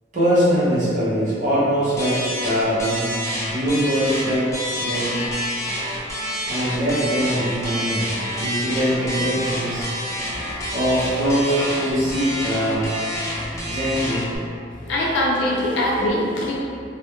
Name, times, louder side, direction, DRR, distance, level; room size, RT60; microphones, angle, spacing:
voice 1, 0.1-3.1 3.5-4.5 4.8-5.2 6.5-9.9 10.7-12.9 13.6-14.2, equal, 45° right, -9 dB, 0.5 m, -22 dB
sound 1, 2.0-14.4, equal, 15° left, 0.4 m, -28 dB
voice 2, 10.3-10.7 13.6-13.7 14.8-16.6, left 1 dB, 85° left, -3 dB, 0.5 m, -23 dB
2.2 x 2.0 x 2.8 m, 2.5 s
head